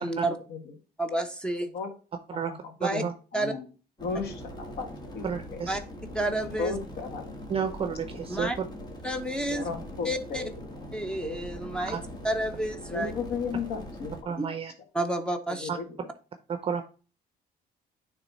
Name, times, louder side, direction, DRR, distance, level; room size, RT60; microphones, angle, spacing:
voice 1, 0.0-0.4 1.0-1.7 2.8-3.0 3.3-3.5 5.7-5.8 6.1-6.7 8.3-8.6 9.0-9.7 10.0-10.4 10.9-12.0 12.2-13.1 14.4-14.5 14.9-15.7, right 1 dB, 5° left, 7 dB, 0.8 m, -30 dB
voice 2, 2.3-3.1 3.3-3.7 4.0-5.7 6.6-7.4 7.8-8.0 8.4-8.5 9.4-10.5 12.9-14.3 15.5-16.1, left 5 dB, 70° left, 6 dB, 1.7 m, -35 dB
sound 1, 4.0-14.2, equal, 25° left, 1.5 m, -42 dB
voice 3, 5.2-5.8 7.5-8.5 11.9-12.0 14.3-14.7 15.7-15.8 16.5-16.8, right 6 dB, 35° right, 8 dB, 0.6 m, -31 dB
9.4 x 3.4 x 4.1 m, 0.36 s
cardioid pair, 110°, 17 cm